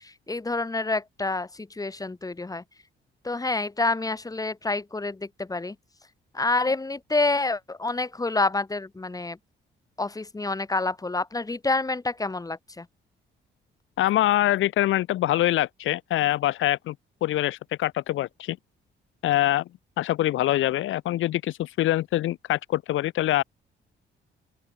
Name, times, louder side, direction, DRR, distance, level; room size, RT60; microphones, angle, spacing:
voice 1, 0.3-2.6 3.2-5.7 6.3-9.4 10.0-12.8, left 3 dB, 20° left, 2.6 m, -28 dB
voice 2, 14.0-17.0 17.2-18.6 19.2-19.6 20.0-23.4, left 14 dB, 85° left, 2.3 m, -24 dB
open air
cardioid pair, 90°, 20 cm